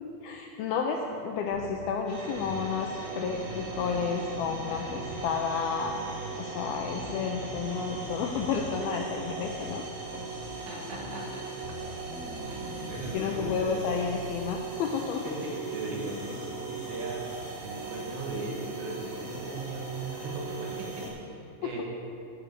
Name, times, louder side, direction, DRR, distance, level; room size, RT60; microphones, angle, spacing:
voice 1, 0.0-5.9 6.4-9.8 13.1-15.2 21.6-21.8, left 6 dB, 85° left, 2 dB, 2.2 m, -31 dB
sound 1, 1.5-1.7 2.3-2.6 3.2-5.2 5.8-6.0 6.6-8.6 9.2-9.5 10.1-10.3 10.9-11.2 11.6-14.4, equal, 15° right, 3.0 m, -42 dB
sound 2, 2.1-21.1, right 4 dB, 50° right, 4.1 m, -39 dB
voice 2, 10.7-11.5 12.5-13.8 15.3-17.3 17.6-21.8, right 2 dB, 75° right, -1 dB, 3.8 m, -38 dB
11.0 x 8.7 x 6.8 m, 2.6 s
omnidirectional pair, 5.1 m